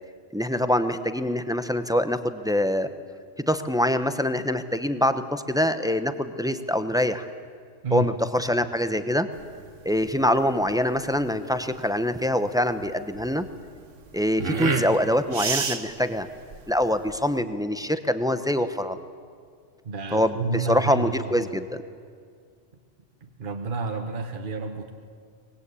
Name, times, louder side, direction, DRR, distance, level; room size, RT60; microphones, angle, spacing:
voice 1, 0.3-2.9 3.5-7.3 7.9-9.3 9.8-13.5 14.1-16.3 16.7-19.1 20.1-21.7, left 1 dB, 5° right, 10 dB, 0.8 m, -24 dB
sound 1, 9.3-17.4, right 5 dB, 85° right, 1.7 m, -32 dB
voice 2, 19.8-21.5 23.2-24.9, right 3 dB, 45° right, 4 dB, 1.4 m, -30 dB
24.5 x 20.0 x 8.4 m, 2.1 s
omnidirectional pair, 1.3 m